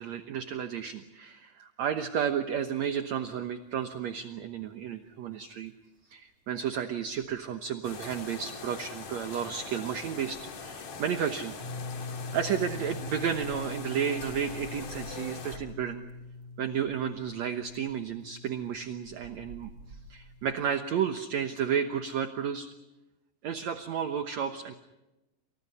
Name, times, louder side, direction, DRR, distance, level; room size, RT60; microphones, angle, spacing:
voice 1, 0.0-5.7 6.1-11.6 12.3-16.0 16.6-19.7 20.1-22.7 23.4-24.7, right 8 dB, 65° right, 7 dB, 2.2 m, -32 dB
sound 1, 3.6-20.5, right 3 dB, 40° right, 5.3 m, -55 dB
sound 2, 7.8-15.6, left 5 dB, 55° left, 3.5 m, -42 dB
sound 3, 11.6-21.1, left 3 dB, 15° left, 3.3 m, -43 dB
29.5 x 28.0 x 5.7 m, 0.97 s
omnidirectional pair, 3.9 m